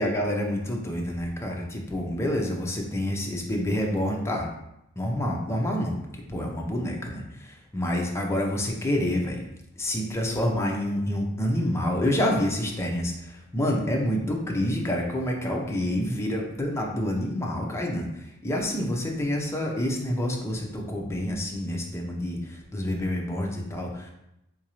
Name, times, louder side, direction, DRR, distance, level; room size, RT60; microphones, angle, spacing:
voice 1, 0.0-4.5 5.0-6.0 6.3-9.4 9.8-24.1, left 1 dB, 15° left, 0 dB, 0.5 m, -28 dB
3.9 x 2.5 x 2.9 m, 0.85 s
head